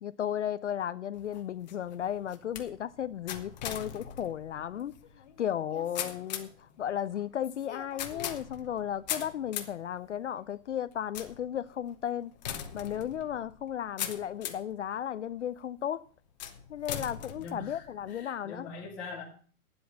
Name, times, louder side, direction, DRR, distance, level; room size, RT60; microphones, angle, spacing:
voice 1, 0.0-4.9 5.4-12.3 12.7-16.0 16.7-18.7, left 10 dB, 55° left, 0.5 m, -34 dB
sound 1, 1.1-14.8 15.3-15.8 16.4-18.2, left 9 dB, 30° left, 0.9 m, -41 dB
voice 2, 17.4-19.2, left 4 dB, 5° left, 0.5 m, -43 dB
9.9 x 7.8 x 6.7 m
hypercardioid pair, 170°, 46 cm